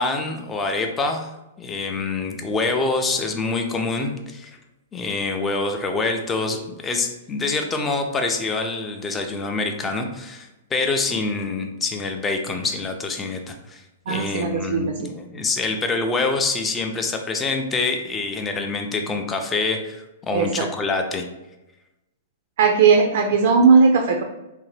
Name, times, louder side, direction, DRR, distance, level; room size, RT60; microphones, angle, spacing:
voice 1, 0.0-1.3 1.6-4.5 4.9-21.3, left 3 dB, 20° left, 5 dB, 0.4 m, -26 dB
voice 2, 14.1-15.1 20.3-20.7 22.6-24.2, right 5 dB, 60° right, 3 dB, 0.3 m, -18 dB
2.6 x 2.0 x 3.2 m, 0.99 s
hypercardioid pair, 115°, 0 cm